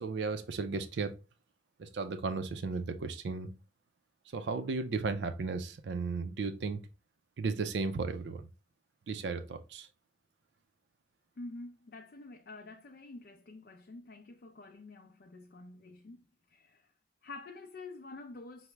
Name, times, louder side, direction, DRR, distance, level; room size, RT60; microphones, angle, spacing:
voice 1, 0.0-1.1 1.8-3.5 4.3-6.8 7.4-8.5 9.1-9.9, right 4 dB, 80° right, 0.4 m, -35 dB
voice 2, 11.4-16.2 16.5-16.9 17.2-18.7, left 2 dB, 55° left, 0.4 m, -48 dB
5.7 x 2.1 x 3.2 m
head